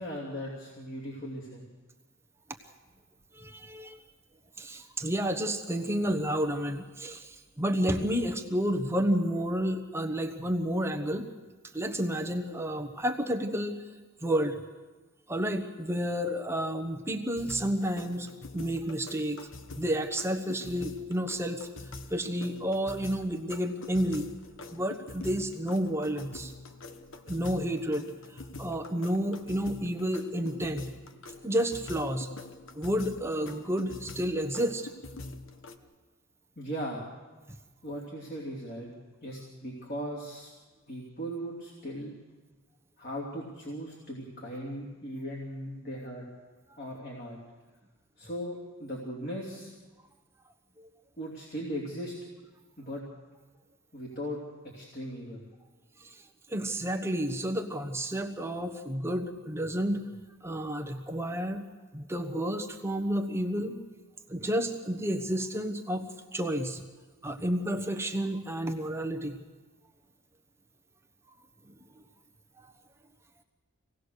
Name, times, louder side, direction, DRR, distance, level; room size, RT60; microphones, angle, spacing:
voice 1, 0.0-1.6 36.6-37.0 37.8-38.9 39.2-40.5 40.9-42.1 43.0-46.2 46.8-47.4 48.2-49.7 51.2-52.1 52.8-53.0 53.9-55.4, equal, 45° left, -3 dB, 3.1 m, -38 dB
voice 2, 3.3-4.0 4.6-11.3 11.7-13.8 14.2-14.6 15.3-19.5 19.8-21.7 22.1-24.3 24.7-26.5 27.3-28.1 28.3-30.9 31.4-32.3 32.8-34.9 50.8-50.9 56.0-56.1 56.5-60.1 60.4-61.7 61.9-63.8 64.3-66.8 67.2-69.4 72.6-72.7, equal, 10° right, 5 dB, 1.1 m, -31 dB
sound 1, 17.4-35.8, left 2 dB, 65° left, 1.1 m, -45 dB
25.5 x 18.0 x 6.6 m, 1.3 s
head